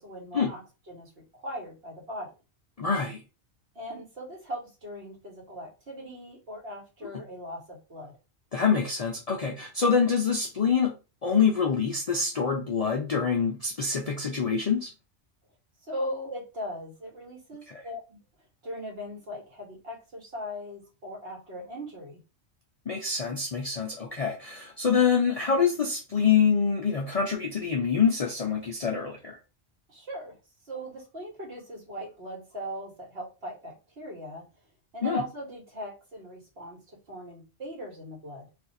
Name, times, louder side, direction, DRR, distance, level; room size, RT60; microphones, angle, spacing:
voice 1, 0.0-2.3 3.7-8.1 15.8-18.2 18.6-22.2 29.9-30.4 30.6-34.4 34.9-38.5, equal, 65° right, 0 dB, 1.4 m, -39 dB
voice 2, 2.8-3.2 8.5-10.9 11.2-14.9 17.7-17.8 22.9-29.4 35.0-35.2, left 6 dB, 55° left, 1 dB, 0.4 m, -25 dB
2.5 x 2.4 x 4.0 m, 0.31 s
omnidirectional pair, 1.1 m